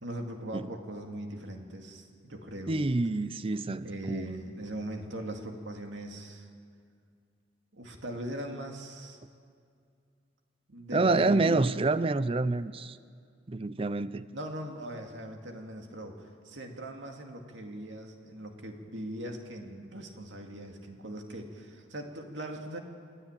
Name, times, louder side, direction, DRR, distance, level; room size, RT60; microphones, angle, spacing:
voice 1, 0.0-2.8 3.8-6.5 7.7-9.2 10.7-11.7 14.3-22.8, right 1 dB, 90° right, 2.3 m, -40 dB
voice 2, 2.7-4.3 10.9-13.0 13.5-14.3, right 3 dB, 30° right, 0.5 m, -27 dB
29.0 x 10.0 x 8.9 m
head